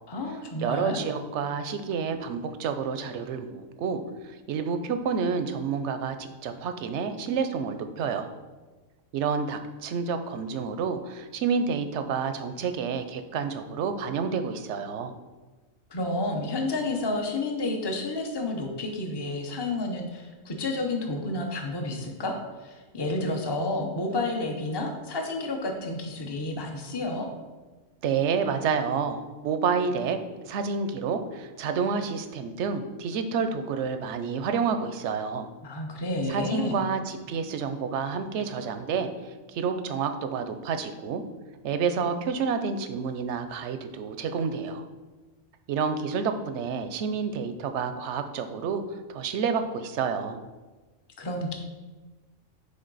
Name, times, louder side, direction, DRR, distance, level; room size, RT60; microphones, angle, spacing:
voice 1, 0.1-1.0 15.9-27.3 35.6-36.7 51.2-51.5, left 2 dB, 25° left, 3 dB, 0.7 m, -30 dB
voice 2, 0.6-8.3 9.1-15.1 28.0-30.2 30.5-35.5 36.3-39.1 39.5-41.2 41.6-44.8 45.7-48.8 49.1-50.4, right 6 dB, 65° right, 8 dB, 0.8 m, -29 dB
9.4 x 3.5 x 4.0 m, 1.2 s
omnidirectional pair, 1.4 m